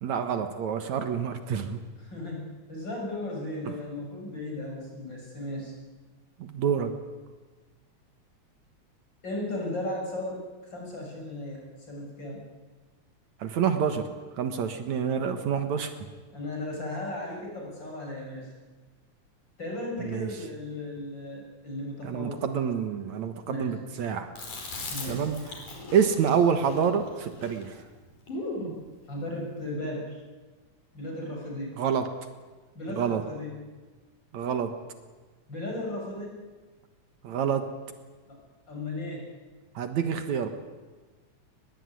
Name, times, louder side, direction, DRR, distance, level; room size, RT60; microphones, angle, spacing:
voice 1, 0.0-1.9 3.7-3.8 6.4-7.0 13.4-14.1 14.4-15.9 20.0-20.3 22.0-24.3 25.1-25.4 25.9-27.8 31.8-32.1 32.9-33.2 34.3-34.8 37.2-37.7 39.8-40.5, right 7 dB, 70° right, 8 dB, 2.7 m, -27 dB
voice 2, 2.0-5.7 9.2-10.4 10.7-12.4 16.3-18.5 19.6-22.4 23.4-23.7 24.9-25.3 29.1-30.2 30.9-31.8 32.7-33.6 35.5-36.4 38.3-38.4 38.7-39.3, left 1 dB, 35° left, -1 dB, 7.7 m, -36 dB
Chewing mastication, 24.4-28.8, left 2 dB, 85° left, 6.3 m, -38 dB
22.5 x 21.0 x 9.8 m, 1.3 s
omnidirectional pair, 3.4 m